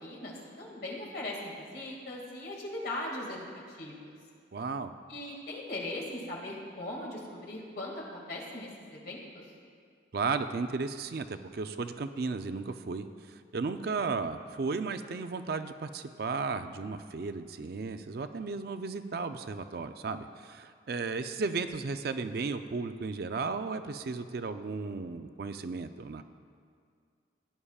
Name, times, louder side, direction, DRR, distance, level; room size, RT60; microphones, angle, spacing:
voice 1, 0.0-4.1 5.1-9.4, left 1 dB, 55° left, -3 dB, 2.1 m, -39 dB
voice 2, 4.5-4.9 10.1-26.2, right 4 dB, 55° right, 9 dB, 0.4 m, -34 dB
16.5 x 9.8 x 2.4 m, 2.1 s
head